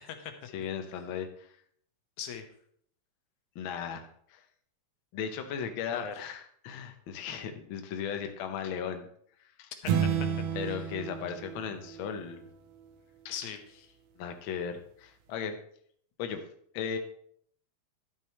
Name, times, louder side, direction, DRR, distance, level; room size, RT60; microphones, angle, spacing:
voice 1, 0.5-1.5 3.5-4.4 5.1-9.1 9.4-9.7 10.5-12.4 13.2-13.3 14.2-15.6 16.2-16.4 16.7-17.0, left 7 dB, 90° left, 6 dB, 1.1 m, -36 dB
voice 2, 5.9-6.2 9.8-10.8 13.3-13.9, left 8 dB, 75° left, 7 dB, 2.3 m, -40 dB
sound 1, 9.9-12.5, right 7 dB, 75° right, 1.8 m, -31 dB
11.5 x 9.1 x 3.1 m, 0.63 s
omnidirectional pair, 3.5 m